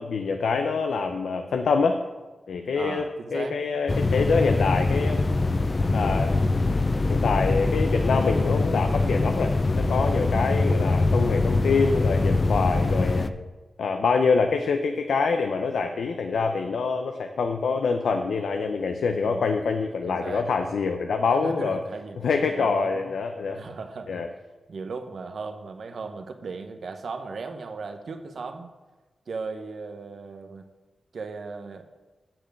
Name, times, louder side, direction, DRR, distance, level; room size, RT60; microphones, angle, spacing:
voice 1, 0.0-2.0 2.5-3.0 3.3-5.3 5.9-6.4 7.1-13.3 13.8-21.8 22.2-23.6 24.1-24.3, left 4 dB, 85° left, 5 dB, 0.6 m, -25 dB
voice 2, 2.7-3.6 10.3-10.7 12.7-13.1 19.1-19.4 20.1-20.5 21.4-22.2 22.5-23.1 23.5-24.2 24.7-28.7 29.3-30.6 31.1-31.8, right 4 dB, 70° right, 7 dB, 1.0 m, -37 dB
sound 1, 3.9-13.3, left 3 dB, 35° left, 0.5 m, -23 dB
7.6 x 6.9 x 7.8 m, 1.2 s
cardioid pair, 75°, 0 cm